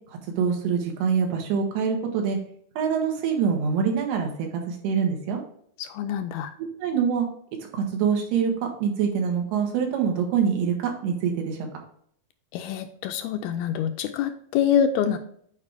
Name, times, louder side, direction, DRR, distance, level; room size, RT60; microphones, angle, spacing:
voice 1, 0.4-2.4 2.8-5.4 6.6-7.3 7.7-8.5 8.8-11.7, right 6 dB, 85° right, 2 dB, 3.4 m, -25 dB
voice 2, 5.8-6.5 12.5-15.2, left 8 dB, 80° left, 7 dB, 2.3 m, -25 dB
8.4 x 4.8 x 3.4 m, 0.64 s
omnidirectional pair, 4.6 m